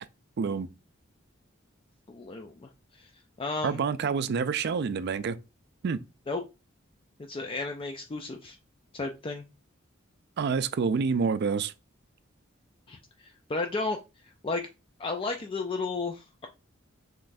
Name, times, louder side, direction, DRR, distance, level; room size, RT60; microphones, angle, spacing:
voice 1, 0.4-0.7 3.6-5.4 5.8-6.0 10.4-11.7, right 5 dB, 55° right, 0.4 m, -27 dB
voice 2, 2.1-3.1 3.4-3.8 6.3-6.4 7.2-8.6 8.9-9.4 12.9-14.0 14.2-14.7 15.0-16.5, left 3 dB, 25° left, 0.4 m, -33 dB
5.5 x 3.1 x 2.6 m
head